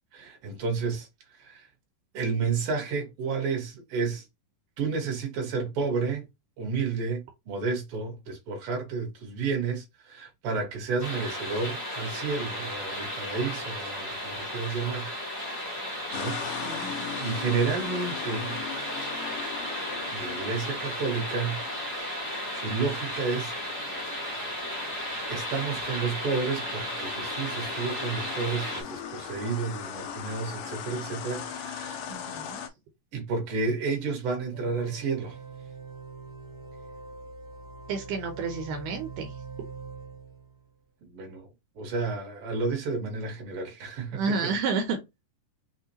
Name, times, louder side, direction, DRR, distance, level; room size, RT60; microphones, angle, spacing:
voice 1, 0.1-1.1 1.4-1.7 2.1-4.2 4.8-6.2 6.6-15.1 16.1-18.6 20.1-22.2 22.5-23.5 25.3-32.1 33.1-35.4 41.0-41.5 41.8-44.5, right 4 dB, 50° right, 2.1 m, -31 dB
sound 1, 11.0-28.8, equal, 25° left, 1.1 m, -34 dB
sound 2, 16.1-32.7, left 8 dB, 80° left, 2.2 m, -40 dB
voice 2, 16.6-17.2 32.1-32.6 37.9-39.3 44.1-45.0, right 4 dB, 75° right, 2.3 m, -31 dB
sound 3, 34.5-40.6, right 4 dB, 25° right, 0.4 m, -43 dB
6.2 x 2.7 x 2.9 m
omnidirectional pair, 3.9 m